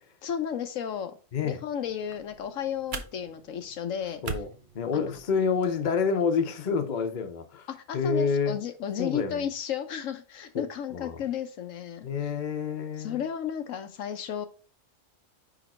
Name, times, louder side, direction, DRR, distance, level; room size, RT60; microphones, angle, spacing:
voice 1, 0.2-1.2 1.4-4.2 4.9-5.1 7.7-12.3 13.0-14.5, left 8 dB, 75° left, 1.1 m, -33 dB
sound 1, 1.8-5.8, right 5 dB, 45° right, 0.7 m, -42 dB
voice 2, 4.2-7.7 7.9-8.6 9.0-9.5 10.9-11.2 12.0-13.2, left 5 dB, 40° left, 0.8 m, -28 dB
5.1 x 5.0 x 4.2 m
omnidirectional pair, 1.4 m